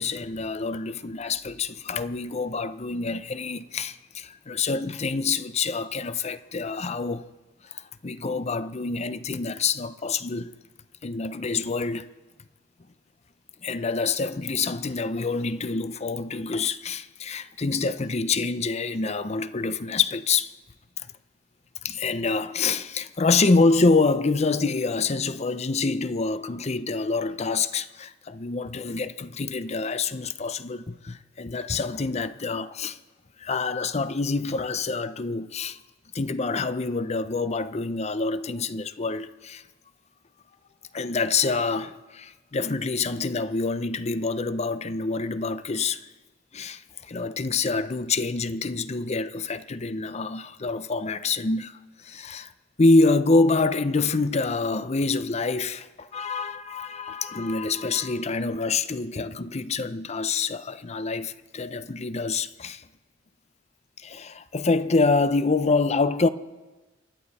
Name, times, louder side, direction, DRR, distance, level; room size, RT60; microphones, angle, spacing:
voice 1, 0.0-7.3 7.6-10.5 11.0-12.1 13.6-20.5 21.8-33.0 33.4-35.8 36.1-39.6 40.9-46.0 46.5-52.5 52.8-62.8 64.0-66.3, left 3 dB, 35° left, 0.6 m, -26 dB
28.5 x 11.5 x 4.2 m
head